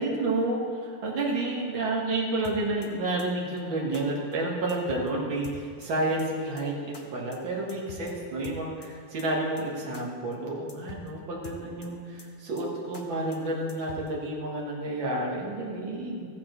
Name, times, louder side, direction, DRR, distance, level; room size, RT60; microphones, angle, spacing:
voice 1, 0.0-16.3, right 2 dB, 80° right, -3 dB, 2.3 m, -30 dB
sound 1, 2.4-2.9 3.2-3.3 3.6-3.7 3.9-4.0 4.3-4.4 4.7-5.1 5.4-5.9 6.2-6.3 6.6-6.7 6.9-7.0 7.3-7.4 7.7-8.1 8.4-8.9 9.2-9.3 9.6-9.7 9.9-10.0 10.3-10.4 10.7-11.1 11.4-11.9 12.2-12.3 12.6-12.7 12.9-13.0 13.3-13.4 13.7-14.1, left 5 dB, 65° left, 0.5 m, -44 dB
15.0 x 8.4 x 3.1 m, 2.2 s
omnidirectional pair, 2.1 m